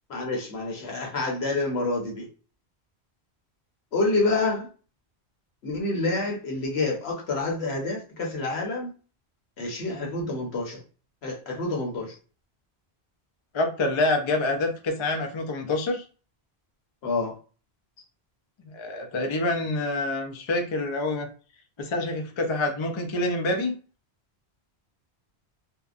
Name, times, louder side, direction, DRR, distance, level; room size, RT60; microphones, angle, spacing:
voice 1, 0.1-2.3 3.9-4.7 5.6-8.9 9.6-10.8 11.2-12.2 17.0-17.4, left 2 dB, 75° left, -1 dB, 1.2 m, -28 dB
voice 2, 13.5-16.0 18.7-21.3 21.8-23.7, left 2 dB, 40° left, 4 dB, 0.4 m, -26 dB
2.8 x 2.1 x 2.4 m, 0.37 s
omnidirectional pair, 1.1 m